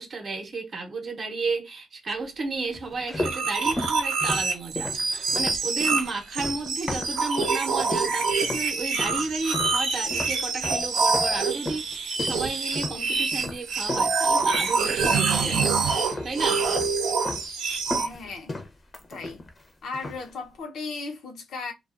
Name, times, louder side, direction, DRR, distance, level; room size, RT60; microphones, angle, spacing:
voice 1, 0.0-16.7, right 3 dB, 45° right, 0.7 m, -33 dB
sound 1, 2.7-7.6 7.9-8.7 9.0-15.3 15.6-16.4 16.7-17.5 17.7-19.6 19.9-20.3, left 2 dB, 30° left, 0.6 m, -35 dB
sound 2, 3.2-18.1, right 4 dB, 90° right, 0.7 m, -26 dB
voice 2, 17.9-18.6 19.1-19.4 19.8-21.7, left 4 dB, 70° left, 0.6 m, -36 dB
2.5 x 2.3 x 2.4 m
cardioid pair, 90°, 0 cm